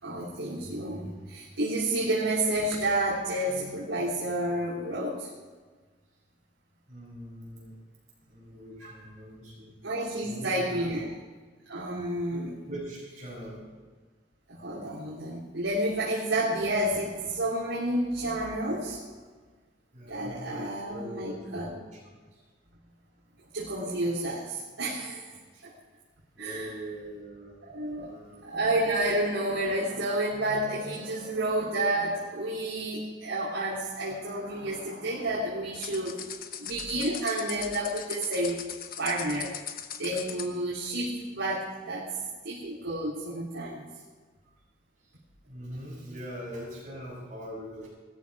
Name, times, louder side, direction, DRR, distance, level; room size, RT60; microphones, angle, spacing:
voice 1, 0.0-5.3 8.8-9.0 9.8-11.1 11.6-12.6 14.5-19.2 20.0-21.7 23.5-25.2 25.6-25.7 26.4-26.9 27.6-28.1 28.4-36.2 36.6-38.6 39.0-39.6 40.0-42.1 42.4-43.9, right 1 dB, 80° right, -7 dB, 3.5 m, -30 dB
voice 2, 6.9-7.8 8.3-9.7 10.2-11.0 12.3-13.7 19.9-22.4 26.3-28.4 44.4-44.5 45.0-45.1 45.5-47.9, equal, 35° right, -9 dB, 5.8 m, -42 dB
sound 1, 35.7-40.6, left 9 dB, 45° left, 0.9 m, -40 dB
19.0 x 13.5 x 4.9 m, 1.4 s
head